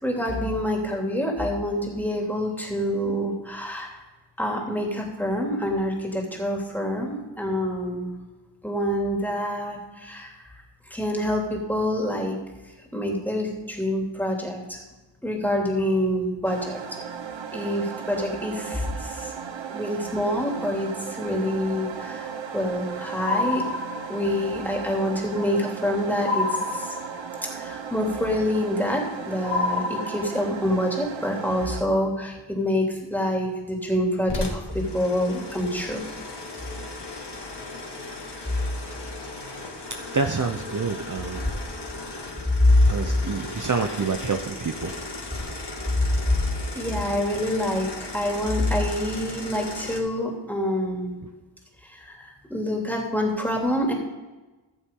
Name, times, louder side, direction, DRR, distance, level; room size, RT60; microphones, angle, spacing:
voice 1, 0.0-4.0 4.4-8.1 8.6-10.3 10.9-12.4 12.9-14.8 15.2-17.0 17.5-19.3 19.7-20.9 21.2-23.6 24.1-26.5 26.7-27.0 27.5-36.0 42.6-42.8 46.0-46.3 46.7-51.2 51.9-53.9, left 1 dB, 5° left, -1 dB, 2.9 m, -26 dB
sound 1, 16.4-31.8, right 7 dB, 85° right, 0.9 m, -36 dB
sound 2, 23.2-24.4 26.2-27.4 29.4-30.7, left 3 dB, 45° left, 3.0 m, -28 dB
sound 3, 34.3-50.0, left 2 dB, 65° left, 2.0 m, -37 dB
voice 2, 38.4-39.0 39.4-41.5 42.9-45.0 45.3-45.5 46.2-46.3 46.7-46.8, right 4 dB, 45° right, 5 dB, 0.8 m, -29 dB
15.0 x 7.2 x 3.8 m, 1.2 s
wide cardioid pair, 60°, 44 cm